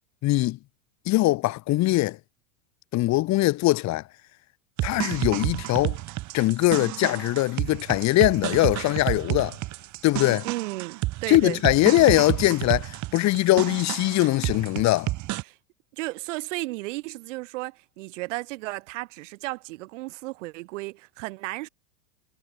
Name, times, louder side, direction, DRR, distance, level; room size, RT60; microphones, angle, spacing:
voice 1, 0.2-0.6 1.1-2.2 2.9-4.0 4.8-6.0 6.3-9.6 10.0-10.4 11.3-15.1, left 18 dB, 45° left, 2.6 m, -22 dB
sound 1, 4.8-15.4, right 18 dB, 45° right, 6.1 m, -31 dB
voice 2, 10.4-11.6 15.5-15.6 15.9-21.7, right 21 dB, 65° right, 7.5 m, -34 dB
hypercardioid pair, 110°, 39 cm